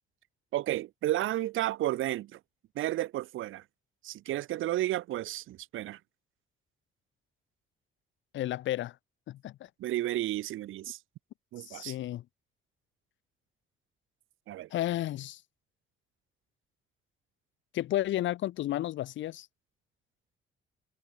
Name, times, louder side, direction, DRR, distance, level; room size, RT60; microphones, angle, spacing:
voice 1, 0.5-2.4 2.7-3.6 4.0-6.0 9.8-11.0 11.5-11.9 14.5-14.7, right 15 dB, 85° right, 2.7 m, -32 dB
voice 2, 8.3-9.0 9.3-9.7 11.6-12.2 14.7-15.4 17.7-19.5, left 14 dB, 75° left, 0.8 m, -32 dB
cardioid pair, 90°, 20 cm